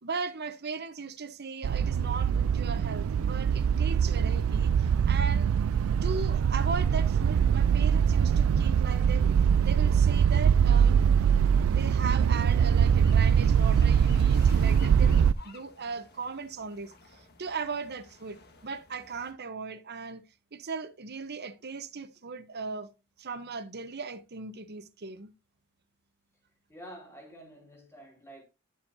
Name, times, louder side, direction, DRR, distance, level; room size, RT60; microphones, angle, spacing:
voice 1, 0.0-5.5 6.0-11.0 11.7-20.2 20.5-22.9 23.2-25.3, right 4 dB, 50° right, 0.9 m, -38 dB
sound 1, 1.6-15.3, right 7 dB, 75° right, 0.3 m, -23 dB
sound 2, 12.9-19.3, left 4 dB, 50° left, 1.6 m, -53 dB
voice 2, 26.7-28.4, equal, 10° left, 2.6 m, -48 dB
10.5 x 7.2 x 2.7 m
head